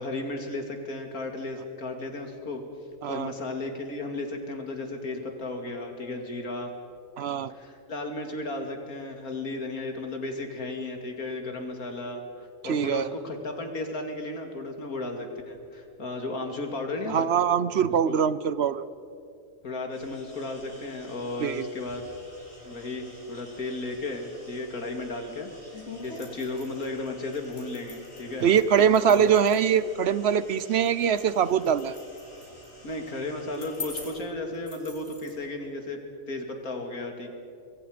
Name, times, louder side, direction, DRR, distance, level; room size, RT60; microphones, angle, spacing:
voice 1, 0.0-2.6 3.1-6.7 7.5-17.3 18.1-18.2 19.6-22.0 22.6-28.5 29.1-29.3 32.8-36.0 36.3-37.4, left 2 dB, 85° left, 4 dB, 2.9 m, -34 dB
voice 2, 7.2-7.5 12.6-13.1 17.1-18.8 21.4-21.7 28.4-32.0, right 8 dB, 55° right, 16 dB, 0.8 m, -23 dB
sound 1, 19.9-34.1, equal, 65° left, 8.1 m, -51 dB
sound 2, 25.7-35.3, left 3 dB, 50° left, 3.9 m, -45 dB
25.0 x 23.0 x 5.1 m, 2.5 s
omnidirectional pair, 1.5 m